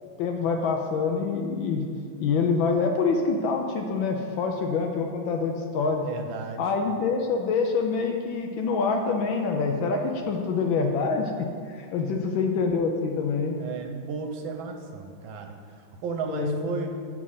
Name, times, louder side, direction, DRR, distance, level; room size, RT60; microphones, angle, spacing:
voice 1, 0.0-1.9 2.2-6.1 6.6-11.3 11.7-13.5 16.3-16.7, left 4 dB, 75° left, 3 dB, 1.3 m, -26 dB
voice 2, 5.9-6.6 12.0-12.2 13.6-16.9, right 5 dB, 75° right, 5 dB, 1.4 m, -35 dB
8.3 x 5.0 x 5.5 m, 2.1 s
omnidirectional pair, 2.3 m